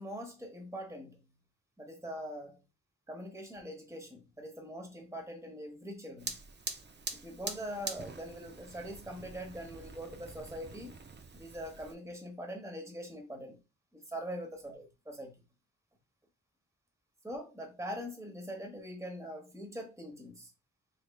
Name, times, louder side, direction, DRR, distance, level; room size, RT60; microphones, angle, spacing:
voice 1, 0.0-1.3 1.8-2.6 3.1-6.4 7.1-11.0 11.3-13.6 13.9-15.4 17.2-20.5, equal, 10° right, 0.9 m, -43 dB
Fire, 6.2-11.9, right 4 dB, 30° right, 0.4 m, -44 dB
3.5 x 3.1 x 2.2 m
wide cardioid pair, 95°, 35 cm